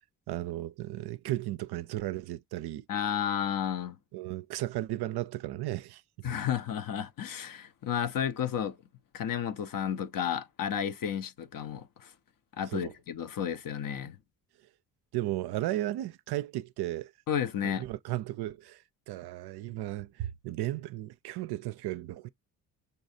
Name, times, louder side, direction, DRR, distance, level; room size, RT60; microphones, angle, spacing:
voice 1, 0.3-2.9 4.1-6.0 12.7-12.9 15.1-17.1 17.6-22.3, right 15 dB, 55° right, 0.5 m, -35 dB
voice 2, 2.9-4.0 6.2-8.7 9.1-12.1 12.6-14.2 17.3-17.9, left 9 dB, 45° left, 0.7 m, -32 dB
5.7 x 3.1 x 2.7 m
hypercardioid pair, 50°, 47 cm